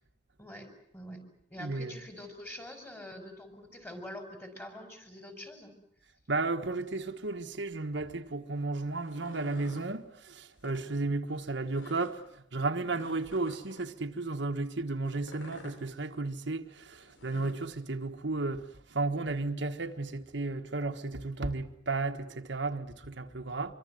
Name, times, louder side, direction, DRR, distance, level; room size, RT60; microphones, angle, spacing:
voice 1, 0.4-1.2 1.5-5.7, left 1 dB, 10° left, 5.5 m, -45 dB
voice 2, 1.6-1.9 6.3-23.7, right 3 dB, 65° right, 1.5 m, -34 dB
sound 1, 8.9-9.9 10.5-10.8 11.7-12.1 12.9-13.9 15.1-15.8 17.0-17.7, left 1 dB, 85° left, 5.6 m, -50 dB
25.5 x 24.5 x 7.9 m
head